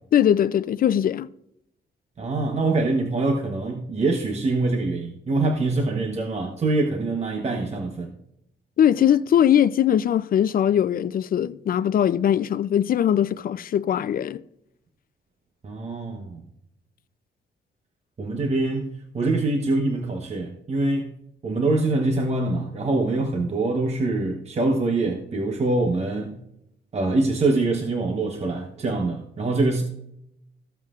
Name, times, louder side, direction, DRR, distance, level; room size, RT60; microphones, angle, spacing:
voice 1, 0.1-1.3 8.8-14.4, left 10 dB, 50° left, 0.4 m, -21 dB
voice 2, 2.2-8.1 15.6-16.4 18.2-21.1 21.4-26.4 26.9-29.8, right 2 dB, 35° right, 1.0 m, -24 dB
14.5 x 7.5 x 2.4 m
cardioid pair, 110°, 18 cm